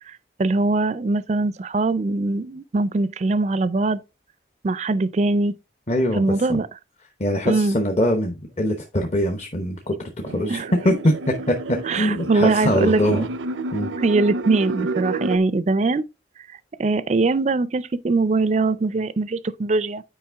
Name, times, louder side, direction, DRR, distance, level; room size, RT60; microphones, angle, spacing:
voice 1, 0.1-4.0 4.6-5.5 6.1-6.7 7.5-7.8 10.5-10.7 11.9-13.3 14.0-16.1 16.8-20.0, right 3 dB, 35° right, 0.4 m, -22 dB
voice 2, 5.9-6.6 7.2-11.1 11.5-13.3 13.7-13.9, equal, 35° left, 0.9 m, -23 dB
sound 1, 10.2-15.4, right 3 dB, 90° right, 0.6 m, -30 dB
8.7 x 5.0 x 3.5 m
head